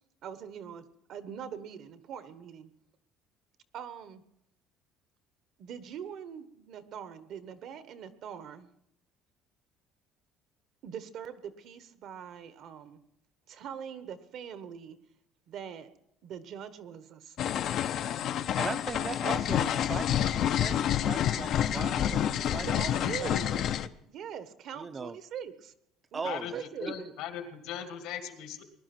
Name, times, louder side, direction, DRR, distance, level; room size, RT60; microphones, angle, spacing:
voice 1, 0.2-2.7 3.7-4.2 5.6-8.7 10.8-13.0 13.5-15.0 15.5-15.9 16.2-17.6 21.8-21.9 22.5-23.5 24.1-25.7 26.1-27.1, right 8 dB, 55° right, 12 dB, 1.2 m, -42 dB
sound 1, 17.4-23.9, left 10 dB, 50° left, 0.7 m, -28 dB
voice 2, 18.1-22.7 23.2-23.6 24.8-25.2 26.1-26.6, right 4 dB, 25° right, 13 dB, 0.7 m, -39 dB
voice 3, 26.8-28.6, left 9 dB, 80° left, 6 dB, 2.4 m, -39 dB
20.5 x 11.5 x 6.0 m, 0.78 s
cardioid pair, 145°, 0 cm